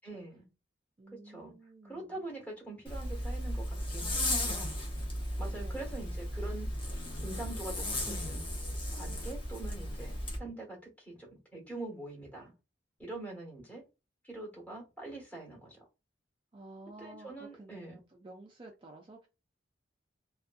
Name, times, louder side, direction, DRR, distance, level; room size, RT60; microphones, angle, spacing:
voice 1, 0.0-0.5 1.1-1.5 1.8-4.7 5.4-6.7 7.2-8.4 8.9-12.5 13.0-13.8 14.2-15.8 17.0-18.0, right 2 dB, 10° left, 1.2 m, -44 dB
voice 2, 1.0-2.2 5.5-6.0 16.5-19.3, right 2 dB, 30° right, 0.4 m, -52 dB
Zipper (clothing), 2.9-10.4, left 1 dB, 30° left, 0.7 m, -35 dB
2.5 x 2.3 x 2.5 m
head